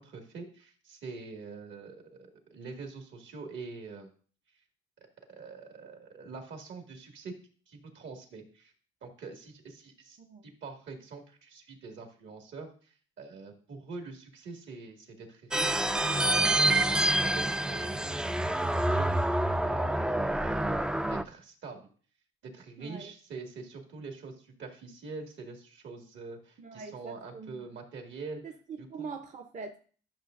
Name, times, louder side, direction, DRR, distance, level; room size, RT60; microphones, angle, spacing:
voice 1, 0.0-2.2 2.5-4.1 5.3-7.3 7.7-8.7 9.0-15.8 16.2-18.0 18.6-19.1 19.6-21.8 22.4-28.4 28.8-29.1, right 4 dB, 70° right, 3 dB, 2.1 m, -45 dB
sound 1, 15.5-21.2, right 1 dB, 5° right, 0.3 m, -27 dB
voice 2, 22.8-23.1 26.6-27.5 28.4-29.8, right 5 dB, 40° right, 5 dB, 0.7 m, -43 dB
12.0 x 6.3 x 2.6 m, 0.43 s
cardioid pair, 90°, 20 cm